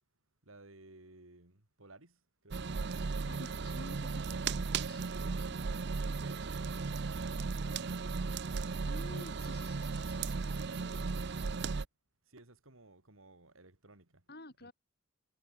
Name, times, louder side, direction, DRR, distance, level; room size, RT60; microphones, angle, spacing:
voice 1, 0.4-2.7 5.2-8.1 12.3-14.2 14.6-14.7, right 2 dB, 75° right, 3.7 m, -58 dB
sound 1, 2.5-11.9, right 4 dB, 55° right, 0.6 m, -36 dB
voice 2, 3.0-4.5 4.9-5.0 5.3-5.6 8.5-11.3 14.3-14.7, left 1 dB, 50° left, 6.0 m, -52 dB
head